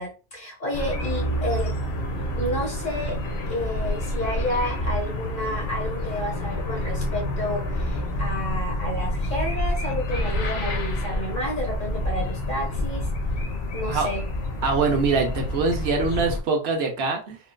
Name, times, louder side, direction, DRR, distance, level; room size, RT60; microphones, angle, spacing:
voice 1, 0.0-1.7 2.4-3.2 3.5-13.1 13.7-14.2, left 1 dB, 50° left, -2 dB, 1.4 m, -30 dB
sound 1, 0.7-16.4, left 1 dB, 75° left, 1.0 m, -28 dB
voice 2, 14.6-17.4, right 4 dB, 75° right, 3 dB, 1.0 m, -23 dB
3.8 x 2.3 x 2.2 m, 0.32 s
omnidirectional pair, 1.1 m